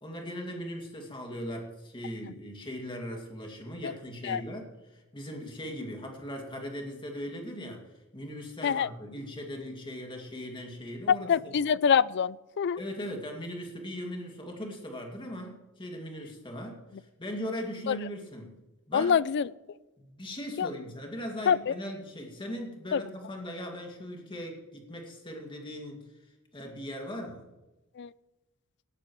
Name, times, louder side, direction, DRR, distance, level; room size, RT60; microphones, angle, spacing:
voice 1, 0.0-11.5 12.8-19.1 20.0-26.1 26.5-27.5, equal, 25° left, 1 dB, 2.3 m, -39 dB
voice 2, 11.3-12.8 17.9-18.0 18.9-19.5 20.6-20.7 21.5-21.7 22.9-23.0 28.0-28.1, left 7 dB, 50° left, 20 dB, 0.4 m, -25 dB
17.0 x 12.5 x 3.1 m, 1.1 s
head